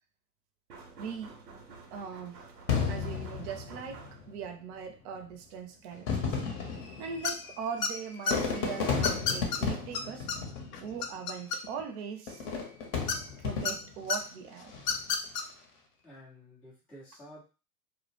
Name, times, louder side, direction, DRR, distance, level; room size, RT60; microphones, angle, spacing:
sound 1, 0.7-4.6, right 4 dB, 90° right, 0.8 m, -51 dB
voice 1, 1.0-1.4 1.9-2.5 2.9-6.4 7.0-10.3 10.8-12.5 13.4-14.7, right 6 dB, 45° right, 6 dB, 0.6 m, -40 dB
Fireworks, 2.7-4.3 5.1-5.2 5.9-11.2 12.3-14.0 14.6-15.1, left 5 dB, 35° left, 0.7 m, -33 dB
sound 2, 7.2-7.5 7.8-8.3 9.0-9.6 9.9-10.0 10.3-10.4 10.7-11.9 13.1-13.7 14.1-14.2 14.8-15.4, left 5 dB, 75° left, 0.6 m, -30 dB
voice 2, 16.0-17.4, equal, 5° left, -7 dB, 0.4 m, -51 dB
2.1 x 2.0 x 3.1 m, 0.33 s
hypercardioid pair, 115°, 49 cm